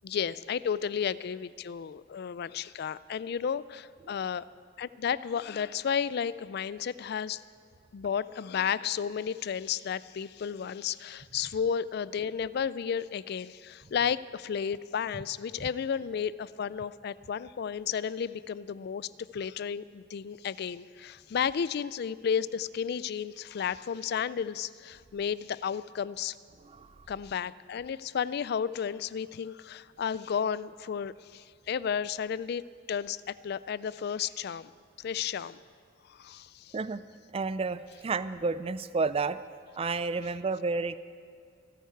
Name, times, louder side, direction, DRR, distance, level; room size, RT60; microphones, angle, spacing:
voice 1, 0.0-4.4 4.8-7.4 7.9-26.4 27.1-32.6 32.9-34.7 35.0-35.6 36.1-36.7, left 7 dB, 55° left, 17 dB, 0.3 m, -33 dB
voice 2, 37.3-39.4 39.8-40.9, right 4 dB, 30° right, 15 dB, 0.4 m, -31 dB
26.5 x 9.4 x 4.6 m, 2.2 s
head